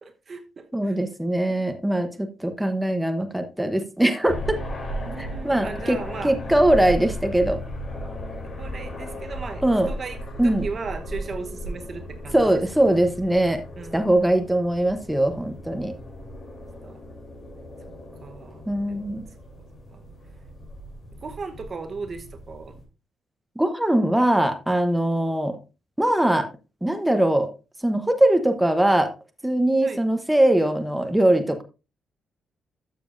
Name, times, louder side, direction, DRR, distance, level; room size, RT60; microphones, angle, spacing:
voice 1, 0.0-1.0 1.5-2.0 5.0-6.3 7.0-7.1 8.4-12.6 12.9-13.0 13.8-14.0 16.8-17.0 18.2-18.6 18.9-19.0 19.9-20.0 21.2-22.8 29.8-30.0, right 4 dB, 35° right, 1.0 m, -37 dB
voice 2, 0.7-4.6 5.2-6.0 6.2-7.6 9.6-9.9 10.4-10.7 12.3-13.6 13.9-15.9 18.7-19.2 23.6-25.6 26.0-26.5 26.8-27.5 27.8-29.1 29.4-31.6, right 1 dB, 5° right, 0.9 m, -21 dB
sound 1, 4.3-22.8, equal, 40° left, 3.2 m, -36 dB
12.5 x 6.9 x 2.6 m
cardioid pair, 145°, 0 cm